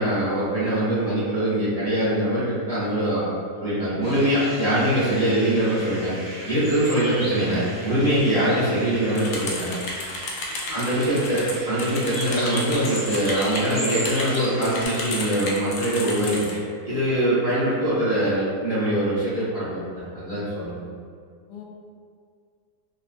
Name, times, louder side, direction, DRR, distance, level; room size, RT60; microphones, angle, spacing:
voice 1, 0.0-3.2 3.6-6.1 6.4-9.7 10.7-20.8, right 1 dB, 25° right, -13 dB, 1.1 m, -23 dB
sound 1, 4.0-14.8, right 1 dB, 20° left, 0.8 m, -36 dB
voice 2, 5.3-5.6 10.9-11.3 21.5-21.6, left 6 dB, 90° left, -2 dB, 1.2 m, -40 dB
sound 2, 9.2-16.5, left 2 dB, 70° left, 0.8 m, -32 dB
3.2 x 2.2 x 2.5 m, 2.1 s
omnidirectional pair, 1.7 m